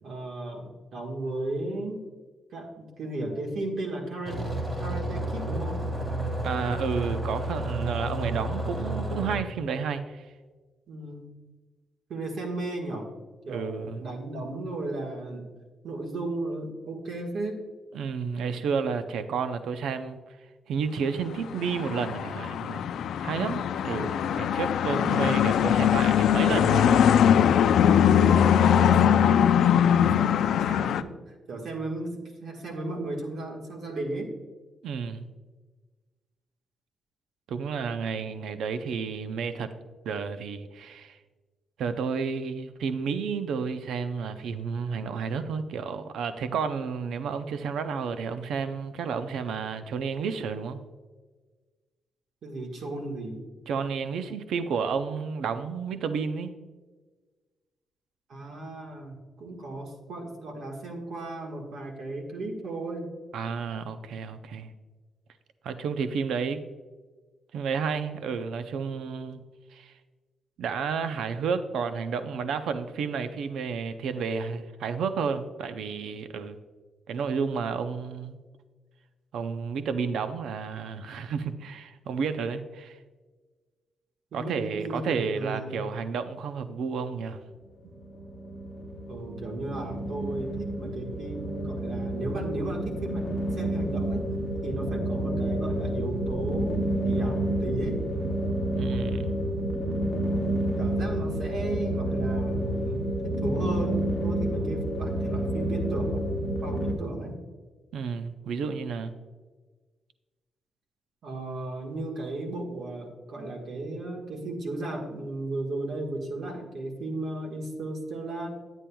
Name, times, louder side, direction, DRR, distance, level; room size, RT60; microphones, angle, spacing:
voice 1, 0.0-2.1 2.5-5.9 10.9-11.3 12.1-13.1 13.4-15.5 15.8-17.6 28.8-31.2 31.5-34.3 52.4-53.4 58.3-63.1 84.3-85.8 89.0-94.3 94.6-98.0 100.8-106.3 106.6-107.4 111.2-118.5, right 2 dB, 60° right, 1 dB, 1.4 m, -35 dB
sound 1, 4.3-9.4, right 1 dB, 25° right, 1.7 m, -31 dB
voice 2, 6.4-10.3 13.5-14.1 17.9-20.2 20.7-22.9 23.2-27.2 34.8-35.3 37.5-39.7 40.0-41.2 41.8-50.8 53.7-56.5 63.3-64.7 65.6-66.6 67.5-69.4 69.7-69.9 70.6-76.6 77.1-78.4 79.3-83.0 84.3-87.4 98.7-99.3 107.9-109.2, right 6 dB, 80° right, 10 dB, 0.5 m, -31 dB
sound 2, 21.4-31.0, left 9 dB, 80° left, 0.3 m, -21 dB
sound 3, 87.9-106.9, right 1 dB, 5° left, 1.0 m, -29 dB
10.0 x 9.0 x 2.3 m, 1.3 s
wide cardioid pair, 170°, 0 cm